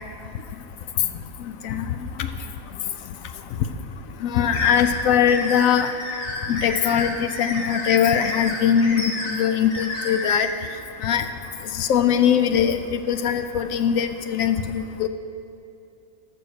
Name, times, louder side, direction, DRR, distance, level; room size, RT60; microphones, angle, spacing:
voice 1, 1.4-2.3 4.2-5.9 6.5-9.0 9.3-10.5 11.0-11.3 11.7-15.1, left 8 dB, 70° left, 9 dB, 0.9 m, -21 dB
sound 1, 4.5-10.5, left 2 dB, 50° left, 2.0 m, -31 dB
14.0 x 6.3 x 6.7 m, 2.6 s
omnidirectional pair, 1.6 m